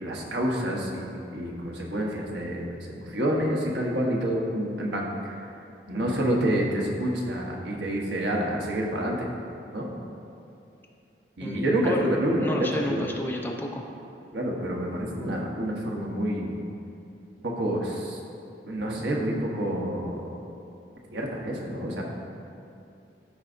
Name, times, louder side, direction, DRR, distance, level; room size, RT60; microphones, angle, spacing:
voice 1, 0.0-5.4 5.9-9.2 9.7-9.9 11.4-13.1 14.3-16.5 17.4-18.2 18.7-20.3 21.1-22.0, right 1 dB, 75° right, -2 dB, 1.1 m, -28 dB
voice 2, 11.4-12.1 12.4-13.9, left 1 dB, 10° left, 0 dB, 0.6 m, -31 dB
14.0 x 4.7 x 2.6 m, 2.7 s
head